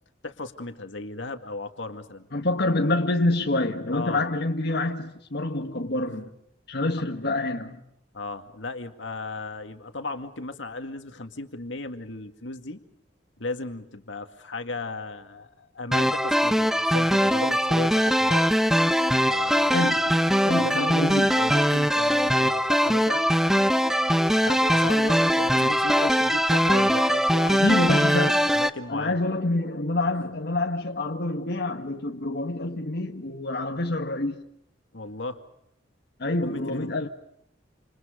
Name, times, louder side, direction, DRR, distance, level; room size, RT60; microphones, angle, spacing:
voice 1, 0.2-2.3 3.9-4.3 6.1-6.2 8.1-12.8 13.4-18.4 19.3-20.1 20.5-20.9 21.3-23.4 24.4-27.7 28.0-29.2 30.1-30.3 34.9-35.4 36.4-36.9, left 3 dB, 80° left, 2.1 m, -36 dB
voice 2, 2.3-6.3 6.7-7.8 19.7-21.4 27.5-28.5 28.9-34.4 36.2-37.1, left 2 dB, 60° left, 1.7 m, -27 dB
sound 1, 15.9-28.7, equal, ahead, 0.8 m, -21 dB
28.5 x 28.0 x 5.1 m
head